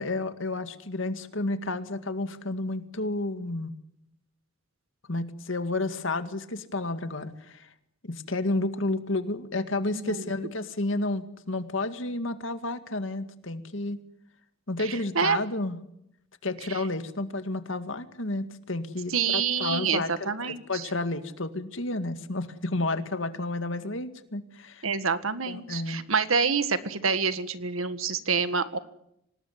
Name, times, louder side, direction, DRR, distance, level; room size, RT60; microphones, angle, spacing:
voice 1, 0.0-3.7 5.1-7.7 8.0-14.0 14.7-15.8 16.4-24.9 25.5-26.0, left 2 dB, 70° left, 9 dB, 2.1 m, -31 dB
voice 2, 9.9-10.3 14.8-15.4 16.7-16.8 19.1-20.9 24.8-28.8, right 5 dB, 90° right, 12 dB, 1.7 m, -27 dB
25.5 x 19.5 x 9.5 m, 0.78 s
head